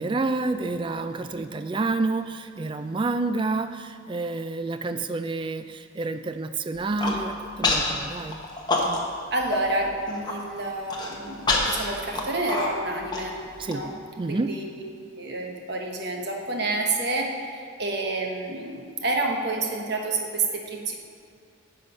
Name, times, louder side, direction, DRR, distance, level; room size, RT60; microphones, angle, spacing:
voice 1, 0.0-8.4 8.9-9.0 13.6-13.8 14.2-14.5, right 3 dB, 25° right, 10 dB, 0.3 m, -29 dB
Human voice, 6.8-7.2 7.6-7.9 8.3-9.2 9.5-9.6 10.0-10.3 10.9-13.7, left 2 dB, 20° left, 1.0 m, -26 dB
voice 2, 9.3-13.4 13.7-13.9 14.3-14.8 15.2-20.9, right 2 dB, 50° right, 2 dB, 1.1 m, -29 dB
9.5 x 6.3 x 5.5 m, 2.4 s
head